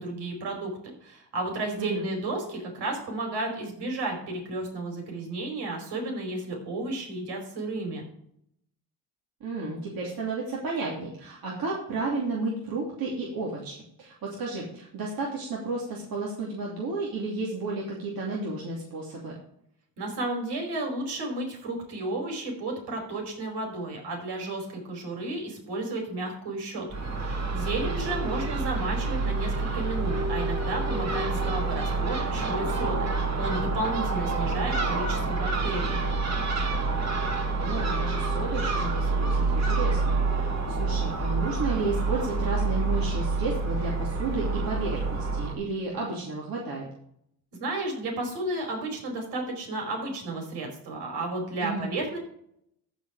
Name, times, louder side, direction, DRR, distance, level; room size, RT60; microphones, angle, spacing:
voice 1, 0.0-8.0 20.0-36.0 47.6-52.2, right 2 dB, 75° right, 2 dB, 4.8 m, -33 dB
voice 2, 9.4-19.4 27.8-28.0 37.5-46.8 51.6-51.9, right 3 dB, 55° right, -4 dB, 2.9 m, -32 dB
Crow / Gull seagull, 26.9-45.5, right 3 dB, 40° right, 2.2 m, -27 dB
14.5 x 5.1 x 4.9 m, 0.71 s
cardioid pair, 100°, 41 cm